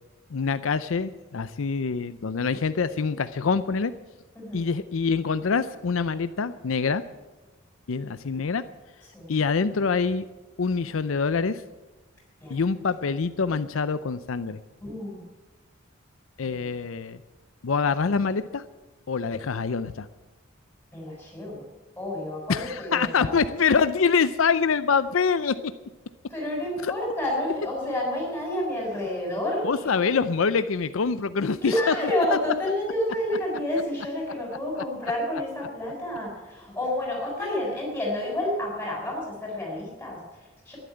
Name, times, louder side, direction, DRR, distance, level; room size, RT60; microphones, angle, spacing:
voice 1, 0.3-3.9 4.5-7.0 7.9-8.6 9.3-10.2 10.6-11.6 12.5-14.6 16.4-17.2 17.6-18.6 19.1-20.1 22.5-25.7 26.8-26.9 29.6-31.9 32.3-32.4, left 5 dB, 75° left, 13 dB, 0.5 m, -25 dB
voice 2, 4.3-4.7 9.1-9.5 12.4-12.6 14.8-15.2 20.9-21.7 22.0-23.3 26.3-30.0 31.6-40.8, left 1 dB, 10° left, -2 dB, 6.6 m, -30 dB
12.5 x 11.0 x 9.5 m, 1.2 s
head